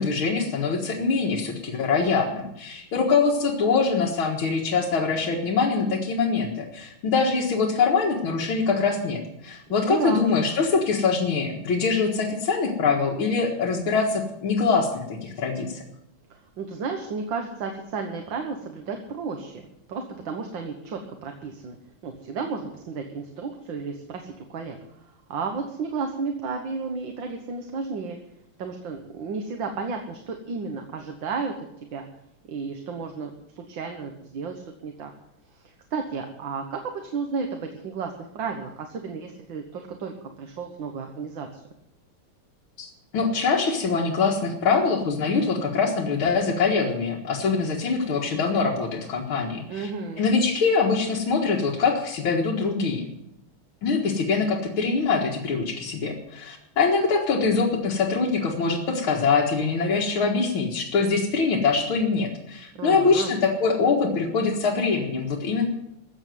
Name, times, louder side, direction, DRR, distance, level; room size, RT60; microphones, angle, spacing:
voice 1, 0.0-15.8 42.8-49.9 50.2-53.1 53.8-65.7, left 4 dB, 75° left, -1 dB, 2.5 m, -23 dB
voice 2, 9.8-10.2 16.3-21.8 22.0-24.8 25.3-28.2 28.6-32.0 32.5-35.1 35.5-35.6 35.9-41.6 49.7-50.2 62.7-63.3, right 4 dB, 65° right, 4 dB, 2.0 m, -33 dB
14.5 x 8.0 x 9.3 m, 0.82 s
omnidirectional pair, 2.3 m